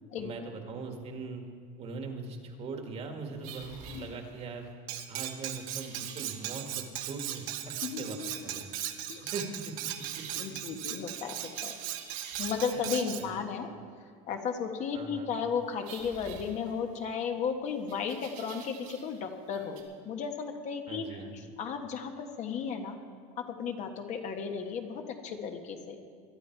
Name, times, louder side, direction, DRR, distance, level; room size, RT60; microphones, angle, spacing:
voice 1, 0.2-1.4 1.8-4.7 5.1-8.2 8.4-8.7 9.3-10.2 12.7-12.9 13.2-13.4 14.9-15.3 20.9-21.5, right 4 dB, 35° right, 4 dB, 1.9 m, -41 dB
sound 1, 3.4-4.6 5.5-6.8 7.1-7.6 9.8-10.4 11.1-13.0 15.8-17.1 17.9-19.2 19.5-19.8, right 6 dB, 85° right, 3.2 m, -48 dB
Cutlery silverware, 4.9-13.3, right 12 dB, 55° right, 1.2 m, -38 dB
voice 2, 7.8-8.4 9.1-9.3 10.4-11.8 12.4-13.7 14.3-19.8 20.0-21.2 21.6-23.0 23.4-26.0, left 6 dB, 45° left, 4 dB, 1.4 m, -34 dB
21.0 x 11.5 x 4.6 m, 2.1 s
supercardioid pair, 140°, 17 cm